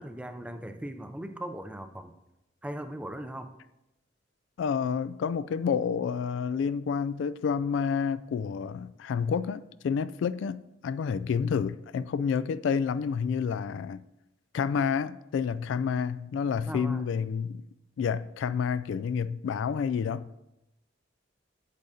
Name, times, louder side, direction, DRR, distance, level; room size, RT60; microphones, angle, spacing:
voice 1, 0.0-2.1 2.6-3.5 16.7-17.0, right 1 dB, 5° right, 0.4 m, -39 dB
voice 2, 4.6-14.0 14.5-17.6 18.0-20.4, left 6 dB, 85° left, 0.3 m, -29 dB
8.3 x 7.7 x 2.7 m
head